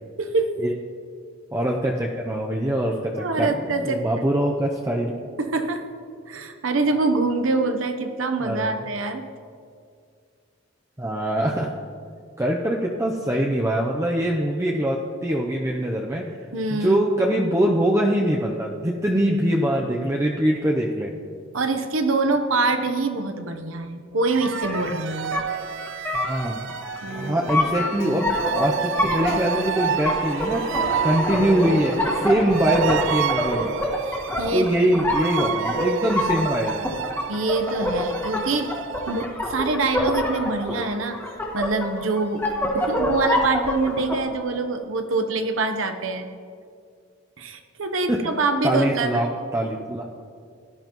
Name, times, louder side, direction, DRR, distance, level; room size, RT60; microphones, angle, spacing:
voice 1, 0.2-0.5 3.2-4.2 5.4-5.9 6.3-9.3 16.5-17.0 21.5-25.5 27.0-27.5 34.1-34.7 37.3-38.7 39.1-46.3 47.4-49.3, right 3 dB, 80° right, 7 dB, 0.9 m, -25 dB
voice 2, 1.5-5.3 8.4-8.8 11.0-11.7 12.4-16.4 16.7-21.1 26.1-26.7 27.1-30.7 31.0-33.7 34.5-36.9 48.1-48.2 48.6-50.0, right 1 dB, 15° right, -1 dB, 0.6 m, -23 dB
sound 1, 24.3-39.3, right 9 dB, 65° right, 0.3 m, -31 dB
sound 2, 24.4-44.2, left 1 dB, 10° left, 1.6 m, -27 dB
sound 3, 26.8-33.6, left 2 dB, 60° left, 2.4 m, -37 dB
18.5 x 11.5 x 3.0 m, 2.2 s
head